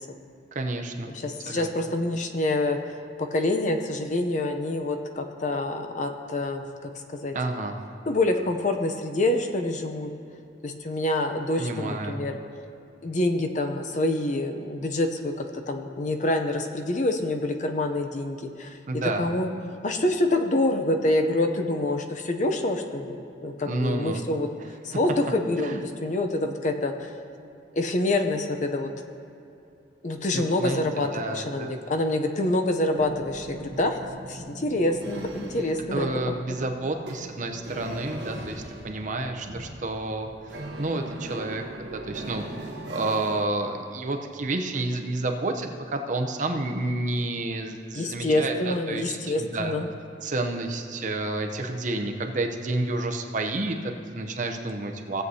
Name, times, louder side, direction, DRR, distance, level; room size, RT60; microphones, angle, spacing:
voice 1, 0.5-1.1 1.5-1.7 7.3-7.7 11.6-12.2 18.9-19.2 23.7-24.2 25.6-25.8 30.3-30.8 31.1-31.7 35.9-40.3 40.8-42.4 42.9-49.8 50.2-55.2, right 2 dB, 45° right, 4 dB, 0.7 m, -30 dB
voice 2, 1.1-2.8 3.2-7.3 8.1-10.1 10.6-12.3 13.0-18.8 19.0-19.5 19.8-24.5 24.8-27.1 27.7-28.9 30.0-34.0 34.3-36.1 47.9-49.9, left 2 dB, 45° left, 5 dB, 0.6 m, -26 dB
sound 1, 33.0-43.5, right 1 dB, 70° right, 1.0 m, -40 dB
16.5 x 7.8 x 2.8 m, 2.6 s
head